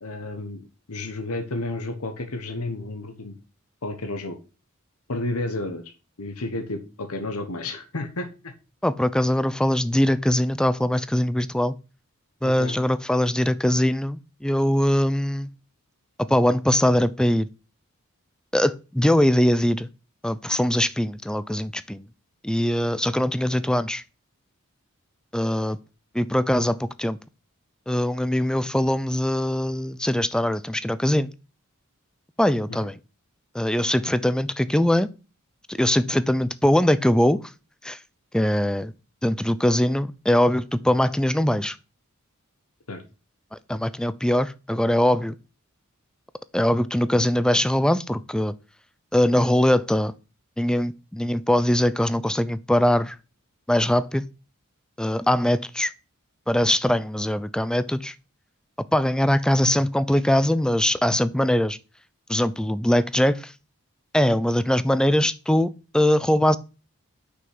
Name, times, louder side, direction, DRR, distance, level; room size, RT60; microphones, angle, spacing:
voice 1, 0.0-0.6 0.9-3.3 3.8-4.4 5.1-5.8 6.2-8.5 12.4-12.8 32.7-32.8 42.9-43.0, left 2 dB, 85° left, 1.2 m, -31 dB
voice 2, 8.8-11.8 12.4-15.5 16.3-17.5 18.5-19.9 20.2-22.0 22.4-24.0 25.3-25.8 26.1-27.2 27.9-31.3 32.4-33.0 33.5-35.1 35.7-37.4 37.8-38.0 38.3-38.9 39.2-41.8 43.5-45.3 46.5-48.5 49.1-50.1 50.6-53.2 53.7-54.3 55.0-55.9 56.5-58.1 58.9-61.8 62.3-63.5 64.1-66.6, left 1 dB, 5° left, 0.4 m, -22 dB
6.1 x 5.7 x 6.1 m
head